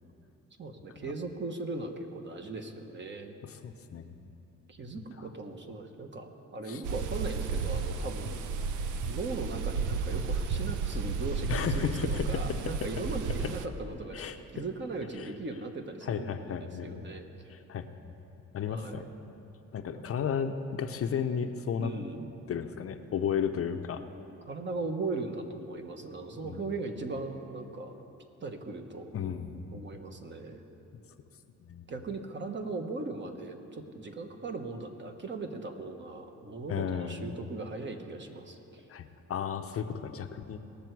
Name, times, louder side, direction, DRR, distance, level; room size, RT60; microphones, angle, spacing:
voice 1, 0.6-3.4 4.7-8.4 9.1-17.3 18.7-19.1 21.8-22.3 24.4-27.9 28.4-29.1 29.7-30.6 31.9-38.8, right 3 dB, 35° right, 5 dB, 1.1 m, -38 dB
voice 2, 3.4-4.3 5.0-5.3 6.7-6.8 11.5-12.2 12.6-12.7 13.4-13.5 14.1-14.4 15.2-15.3 16.0-17.1 17.5-17.9 18.5-19.0 19.7-21.9 22.5-24.0 26.4-26.7 29.1-29.8 31.6-31.8 36.7-37.2 38.9-40.6, left 7 dB, 50° left, 7 dB, 0.6 m, -34 dB
sound 1, 6.8-13.7, right 5 dB, 80° right, 0.7 m, -32 dB
18.5 x 6.7 x 4.6 m, 2.8 s
cardioid pair, 90°, 30 cm